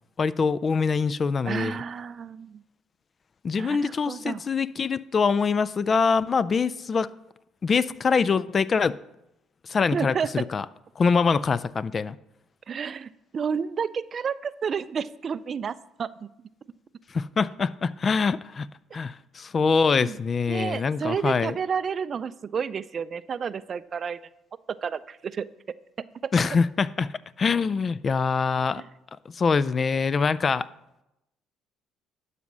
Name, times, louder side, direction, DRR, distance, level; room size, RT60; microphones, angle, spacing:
voice 1, 0.2-1.7 3.4-7.1 7.6-9.0 9.7-10.6 11.0-12.2 17.1-18.7 18.9-21.6 26.3-27.1 27.4-28.8 29.3-30.7, left 5 dB, 40° left, 0.3 m, -24 dB
voice 2, 1.5-2.6 3.5-4.4 9.9-10.5 12.7-16.3 20.0-20.2 20.5-24.2 24.8-25.5 28.7-28.9, right 6 dB, 45° right, 0.3 m, -31 dB
12.0 x 4.1 x 6.0 m
supercardioid pair, 75°, 0 cm